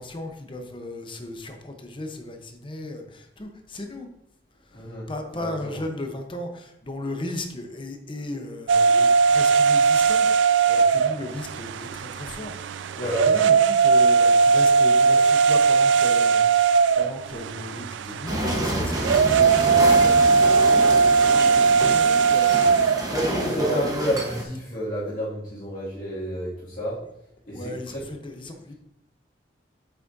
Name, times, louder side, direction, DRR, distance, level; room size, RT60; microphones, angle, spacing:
voice 1, 0.0-4.1 4.7-23.5 27.5-28.7, left 1 dB, 30° left, 4 dB, 0.9 m, -36 dB
voice 2, 4.7-5.1 5.3-5.8 13.0-13.3 22.9-27.0 27.5-28.0, equal, 50° left, -10 dB, 2.2 m, -29 dB
sound 1, 8.7-23.1, right 5 dB, 85° right, 0.3 m, -19 dB
sound 2, 18.3-24.4, right 1 dB, 20° right, 1.1 m, -28 dB
8.5 x 6.0 x 2.7 m, 0.78 s
head